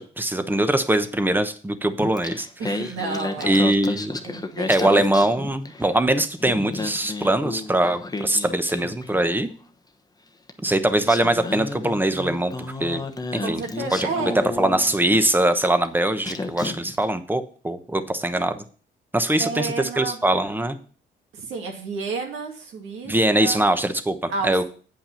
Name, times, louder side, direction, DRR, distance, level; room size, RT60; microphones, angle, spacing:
voice 1, 0.0-2.5 3.5-4.1 4.7-9.5 10.6-13.0 13.3-13.6 13.9-14.1 14.3-18.6 19.1-20.8 23.1-24.6, right 1 dB, 10° right, 10 dB, 1.0 m, -22 dB
Singing, 2.0-5.9 6.2-9.5 10.5-10.6 11.0-15.2 15.8-16.0 16.2-17.0, left 3 dB, 20° left, 1.0 m, -32 dB
voice 2, 2.6-3.6 4.2-4.9 13.4-14.4 19.4-20.2 21.3-23.7 24.3-24.6, right 4 dB, 80° right, 2 dB, 2.4 m, -31 dB
8.8 x 5.5 x 5.7 m, 0.41 s
cardioid pair, 90°, 20 cm